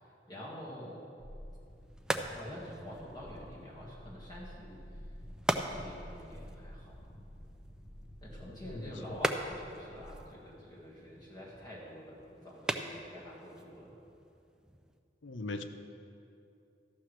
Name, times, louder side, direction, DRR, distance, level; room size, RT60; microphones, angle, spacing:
voice 1, 0.3-1.0 2.1-4.8 5.7-6.9 8.2-13.9, equal, 20° left, -6 dB, 1.7 m, -47 dB
sound 1, 1.2-10.6, equal, 50° left, 0.9 m, -51 dB
sound 2, 1.5-15.0, right 1 dB, 5° right, 0.4 m, -41 dB
voice 2, 8.4-9.2 15.2-15.6, left 2 dB, 85° left, 8 dB, 0.7 m, -41 dB
13.5 x 12.0 x 3.3 m, 2.7 s
head